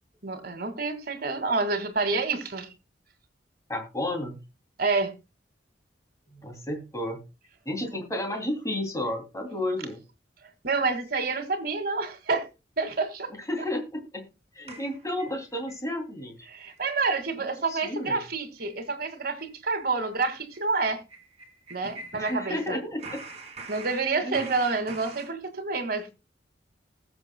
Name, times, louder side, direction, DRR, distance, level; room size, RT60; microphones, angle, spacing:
voice 1, 0.2-2.7 4.8-5.1 10.6-12.5 12.8-13.3 16.5-21.0 21.7-22.8 23.7-26.2, right 3 dB, 55° right, 2.1 m, -28 dB
voice 2, 3.7-4.4 6.3-7.2 7.6-10.0 13.3-14.2 14.5-16.4 17.4-18.2 22.1-23.2 24.2-24.5, left 1 dB, 20° left, 2.8 m, -32 dB
sound 1, 14.7-15.8 16.2-16.3 16.6-16.9 17.2-17.3 17.6-17.8 18.1-18.3 18.6-18.7 19.1-22.7 23.0-25.3, right 3 dB, 35° right, 2.4 m, -45 dB
19.5 x 7.3 x 2.3 m
head